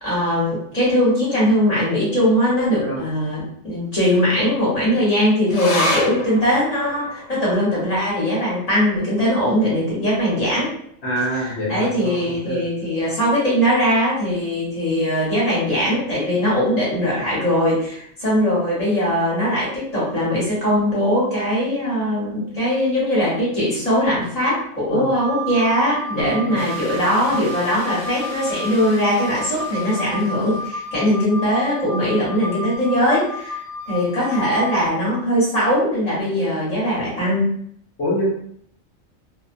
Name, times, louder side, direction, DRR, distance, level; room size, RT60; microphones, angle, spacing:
voice 1, 0.0-10.7 11.3-33.6 33.9-37.5, equal, 35° left, -8 dB, 1.0 m, -20 dB
sound 1, 5.5-12.3 12.6-12.7 13.0-13.7 14.3-14.4, left 2 dB, 80° left, 1.0 m, -30 dB
voice 2, 11.0-12.6 24.9-25.1 26.1-26.6 38.0-38.3, equal, 60° left, -6 dB, 0.9 m, -26 dB
Wind instrument woodwind instrument, 25.1-34.8, left 1 dB, 65° right, 0.5 m, -32 dB
sound 2, 26.5-30.6 30.9-31.0, right 1 dB, ahead, 1.1 m, -39 dB
2.4 x 2.1 x 2.5 m, 0.66 s
omnidirectional pair, 1.4 m